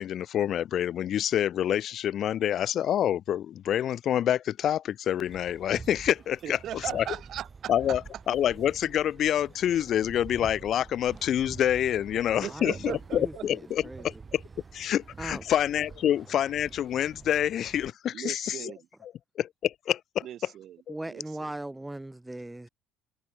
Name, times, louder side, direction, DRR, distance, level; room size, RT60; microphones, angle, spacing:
voice 1, 0.0-6.6 6.9-7.0 7.7-8.0 8.3-14.4 14.7-18.7 19.4-20.2 20.9-21.0, left 10 dB, 50° left, 0.7 m, -27 dB
sound 1, 5.3-17.9, right 5 dB, 30° right, 4.5 m, -47 dB
voice 2, 6.4-8.0 12.3-13.5 18.1-18.9 20.2-20.8 21.1-21.5, right 11 dB, 55° right, 4.2 m, -38 dB
voice 3, 12.4-14.1 15.2-15.4 20.9-22.7, right 1 dB, 10° right, 1.4 m, -39 dB
hypercardioid pair, 65°, 0 cm